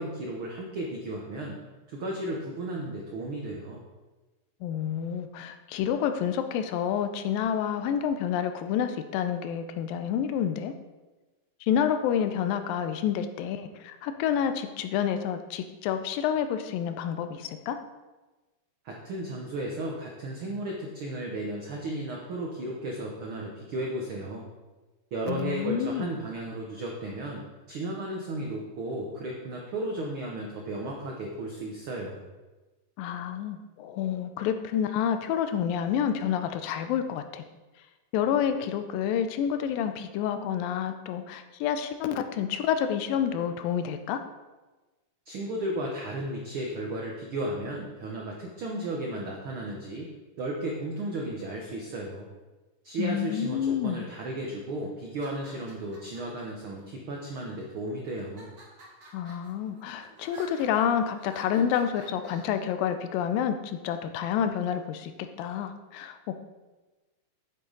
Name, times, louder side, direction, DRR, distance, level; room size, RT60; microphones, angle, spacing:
voice 1, 0.0-1.6 1.9-3.8 18.8-24.5 25.1-27.4 27.7-32.2 45.3-52.3 52.8-58.5, right 1 dB, 90° right, -1 dB, 1.1 m, -34 dB
voice 2, 4.6-10.7 11.6-17.8 25.3-26.1 33.0-37.4 38.1-44.2 53.0-54.1 59.1-65.1 65.4-66.4, left 8 dB, 90° left, 8 dB, 2.4 m, -29 dB
sound 1, 55.1-56.4 57.2-57.7 58.2-62.6, right 2 dB, 35° right, 1.9 m, -51 dB
9.0 x 8.2 x 4.0 m, 1.2 s
omnidirectional pair, 3.9 m